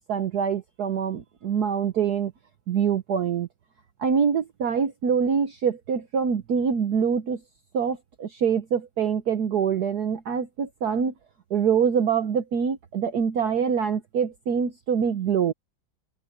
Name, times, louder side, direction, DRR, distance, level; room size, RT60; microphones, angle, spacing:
voice 1, 0.1-2.3 2.7-3.5 4.0-7.4 7.7-11.1 11.5-15.5, right 7 dB, 55° right, 1.4 m, -25 dB
omnidirectional pair, 2.2 m